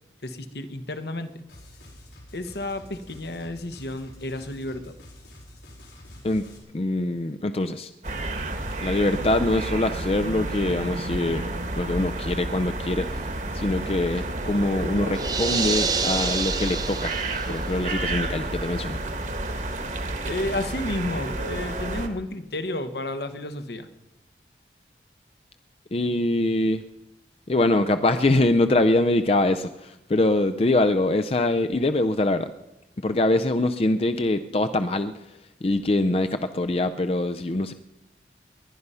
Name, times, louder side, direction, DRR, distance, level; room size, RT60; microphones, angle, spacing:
voice 1, 0.2-1.4 2.3-4.9 20.2-23.9, left 1 dB, 70° left, 9 dB, 1.1 m, -31 dB
sound 1, 1.5-6.6, left 1 dB, 90° left, 4.9 m, -47 dB
voice 2, 6.7-7.9 8.8-17.2 17.5-19.0 25.9-26.8 27.5-32.5 33.0-37.7, left 2 dB, 35° left, 9 dB, 0.5 m, -24 dB
sound 2, 8.0-22.1, right 2 dB, 45° right, 1.4 m, -30 dB
sound 3, 15.1-17.6, right 5 dB, 20° right, 0.8 m, -27 dB
20.5 x 11.0 x 5.5 m, 0.91 s
head